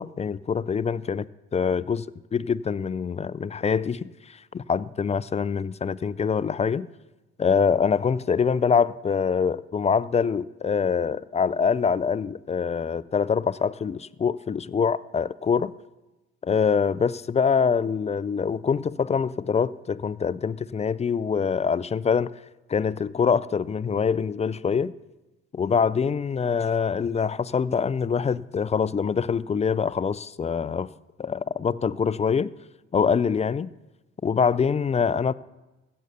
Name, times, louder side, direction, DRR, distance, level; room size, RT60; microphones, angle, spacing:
voice 1, 0.0-2.1 2.3-6.9 7.4-15.7 16.4-22.3 22.7-24.9 25.5-30.9 31.2-32.5 32.9-33.7 34.2-35.3, left 6 dB, 20° left, 0.4 m, -24 dB
15.5 x 6.6 x 6.9 m
hypercardioid pair, 55°, 33 cm